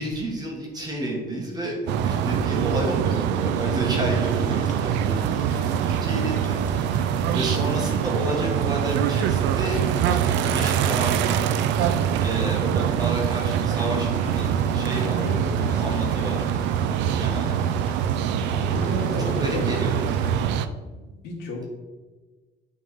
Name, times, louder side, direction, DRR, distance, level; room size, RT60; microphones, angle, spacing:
voice 1, 0.0-1.7 2.0-7.0 7.3-11.6 12.2-15.3 15.8-16.4 17.2-17.5 19.0-20.5, right 1 dB, 20° right, -1 dB, 1.6 m, -31 dB
sound 1, 1.9-20.7, right 8 dB, 75° right, 0.5 m, -24 dB
voice 2, 2.8-3.2 15.1-16.2 18.6-19.6 20.8-21.7, left 1 dB, 65° left, -3 dB, 2.4 m, -33 dB
sound 2, 4.1-20.3, left 3 dB, 45° left, 1.3 m, -45 dB
9.4 x 3.7 x 5.4 m, 1.3 s
cardioid pair, 160°, 18 cm